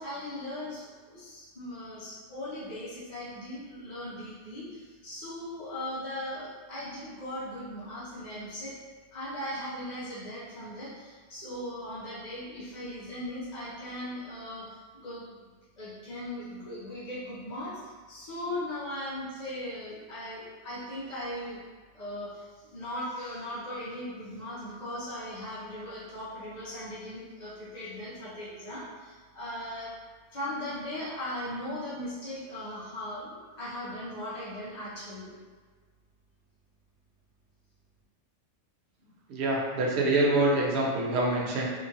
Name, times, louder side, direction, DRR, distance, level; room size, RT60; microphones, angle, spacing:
voice 1, 0.0-8.8 9.1-15.5 15.8-21.6 21.9-29.9 30.3-35.3, left 1 dB, 45° left, -10 dB, 0.7 m, -38 dB
voice 2, 39.3-41.7, right 2 dB, 70° right, -3 dB, 0.9 m, -25 dB
2.9 x 2.4 x 2.7 m, 1.5 s
omnidirectional pair, 1.2 m